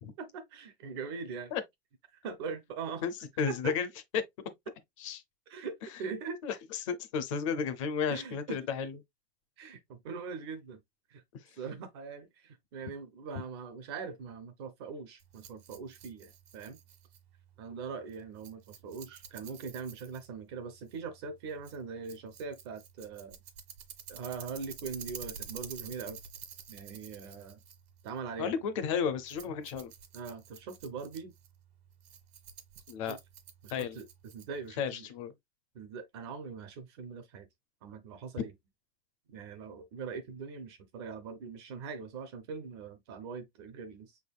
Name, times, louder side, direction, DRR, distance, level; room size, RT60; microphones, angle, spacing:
voice 1, 0.2-1.5 2.1-3.0 3.5-3.7 5.5-6.4 8.1-8.7 9.6-10.8 11.1-11.2 11.6-16.8 17.6-23.4 24.1-26.2 26.7-27.6 28.0-28.5 30.1-31.3 33.0-33.2 33.6-34.1 34.3-35.1 35.7-37.5 37.8-38.5 39.3-44.2, right 5 dB, 25° right, 0.4 m, -41 dB
voice 2, 3.4-3.9 4.1-4.2 5.0-5.2 6.4-9.0 28.4-29.9 32.9-33.2 33.7-34.0 34.8-35.3, left 7 dB, 35° left, 0.5 m, -33 dB
Rattle, 15.2-34.8, right 7 dB, 80° right, 1.3 m, -50 dB
5.8 x 3.5 x 2.3 m
supercardioid pair, 170°, 31 cm